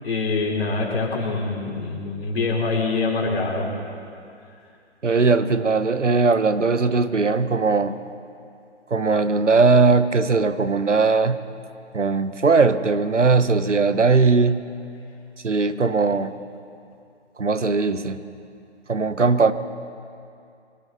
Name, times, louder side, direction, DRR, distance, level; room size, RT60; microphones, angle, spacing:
voice 1, 0.0-3.7, left 3 dB, 60° left, -2 dB, 4.1 m, -25 dB
voice 2, 5.0-8.0 8.9-11.4 11.9-14.6 15.4-16.4 17.4-18.2 18.9-19.5, right 4 dB, 90° right, 12 dB, 1.0 m, -19 dB
24.5 x 14.5 x 4.0 m, 2.5 s
figure-of-eight pair, 140°, 35 cm